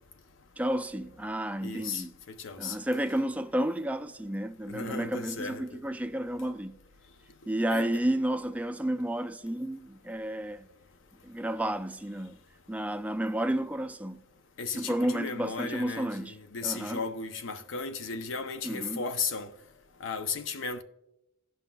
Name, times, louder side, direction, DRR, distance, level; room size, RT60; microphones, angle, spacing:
voice 1, 0.6-2.1 2.6-6.8 7.5-10.7 11.2-12.4 12.7-14.2 14.7-16.4 16.6-17.0 18.6-19.0, right 1 dB, 5° right, 0.3 m, -31 dB
voice 2, 1.6-2.8 4.7-5.8 7.7-7.9 14.6-19.5 20.0-20.8, left 4 dB, 70° left, 0.6 m, -35 dB
16.0 x 5.7 x 2.3 m
head